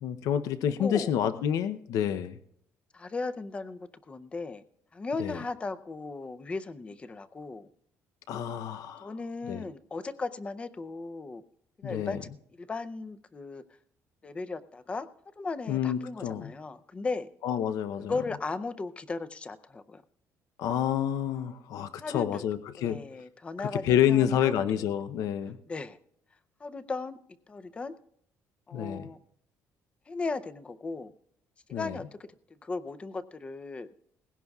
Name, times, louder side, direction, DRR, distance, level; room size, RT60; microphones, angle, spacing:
voice 1, 0.0-2.4 5.2-5.4 8.3-9.1 9.5-9.6 11.8-12.2 15.7-16.5 17.4-18.1 20.6-23.0 23.8-25.6 28.7-29.1 31.7-32.0, left 10 dB, 70° left, 11 dB, 0.7 m, -28 dB
voice 2, 0.7-1.1 2.9-4.6 4.9-7.7 9.0-11.4 11.8-13.6 14.2-15.1 15.4-17.3 18.0-20.0 22.0-22.4 22.8-24.8 25.7-26.0 26.6-27.2 27.5-28.0 28.7-29.2 30.1-31.1 31.7-32.3 32.6-33.9, left 3 dB, 20° left, 12 dB, 0.5 m, -36 dB
20.0 x 16.5 x 2.4 m, 0.69 s
cardioid pair, 165°, 6 cm